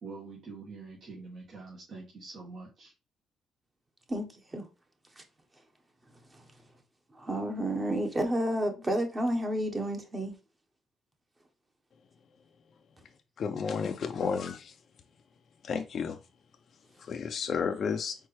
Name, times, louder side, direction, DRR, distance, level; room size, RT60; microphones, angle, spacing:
voice 1, 0.0-2.9, right 4 dB, 60° right, 1.4 m, -45 dB
voice 2, 4.1-4.7 5.2-5.3 6.1-6.6 7.1-10.4, right 1 dB, 25° right, 1.1 m, -31 dB
voice 3, 13.4-14.7 15.6-16.2 17.0-18.2, left 6 dB, 55° left, 0.4 m, -32 dB
4.5 x 3.7 x 3.2 m
cardioid pair, 90°, 0 cm